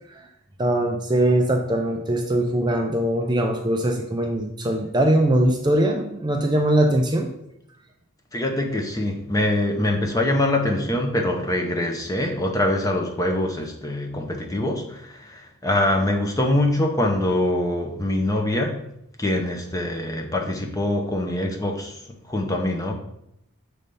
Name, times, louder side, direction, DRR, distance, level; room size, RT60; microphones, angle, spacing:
voice 1, 0.6-7.3, right 1 dB, 20° right, 2 dB, 0.5 m, -21 dB
voice 2, 8.3-18.8 19.2-22.0 22.3-22.9, left 1 dB, 15° left, 2 dB, 0.7 m, -24 dB
6.6 x 3.3 x 5.3 m, 0.79 s
head